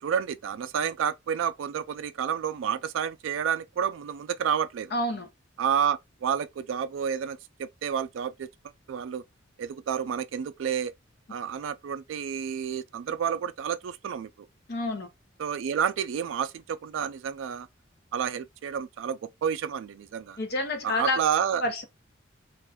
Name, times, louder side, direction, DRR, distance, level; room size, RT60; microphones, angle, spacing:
voice 1, 0.0-4.9 5.6-8.5 8.9-9.2 9.6-10.9 11.3-14.5 15.4-17.7 18.1-20.4 20.8-21.6, right 8 dB, 70° right, 0.3 m, -30 dB
voice 2, 4.9-5.3 14.7-15.1 20.4-21.2 21.6-21.8, left 2 dB, 55° left, 0.7 m, -28 dB
2.5 x 2.2 x 3.3 m
head